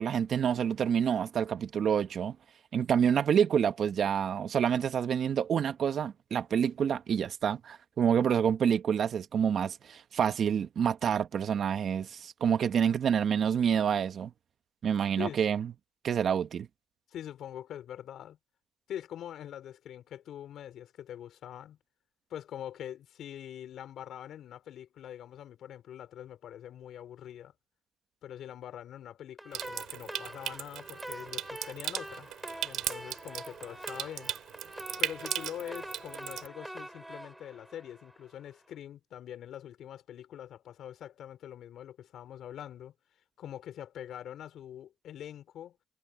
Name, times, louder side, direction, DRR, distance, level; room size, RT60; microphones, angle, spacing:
voice 1, 0.0-2.4 2.7-14.3 14.8-15.7 16.0-16.7, right 8 dB, 60° right, 1.4 m, -28 dB
voice 2, 17.1-18.4 18.9-21.8 22.3-27.5 28.2-32.3 32.6-34.3 35.0-42.9 43.4-45.8, left 10 dB, 75° left, 4.2 m, -44 dB
sound 1, 29.4-38.5, right 1 dB, 5° right, 3.1 m, -45 dB
Water tap faucet / Sink (filling or washing) / Trickle dribble, 29.5-36.5, right 12 dB, 85° right, 3.1 m, -38 dB
cardioid pair, 90°, 0 cm